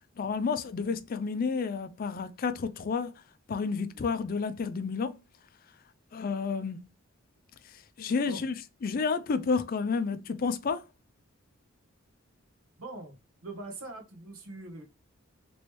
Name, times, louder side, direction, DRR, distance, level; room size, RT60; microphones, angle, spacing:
voice 1, 0.2-3.2 3.5-5.2 6.1-6.9 7.6-8.5 8.8-10.8, left 5 dB, 45° left, 0.3 m, -30 dB
voice 2, 12.8-13.2 13.4-14.8, right 2 dB, 85° right, 1.0 m, -42 dB
3.1 x 3.0 x 3.0 m
head